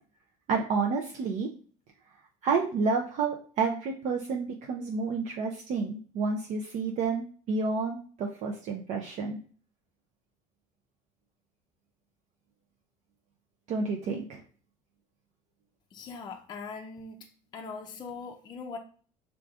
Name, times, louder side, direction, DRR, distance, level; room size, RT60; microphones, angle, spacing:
voice 1, 0.5-1.5 2.4-9.4 13.7-14.4, right 4 dB, 60° right, 1 dB, 0.6 m, -30 dB
voice 2, 15.9-17.2 17.5-18.8, left 4 dB, 30° left, 2 dB, 0.5 m, -41 dB
4.8 x 3.7 x 2.4 m, 0.42 s
cardioid pair, 130°, 14 cm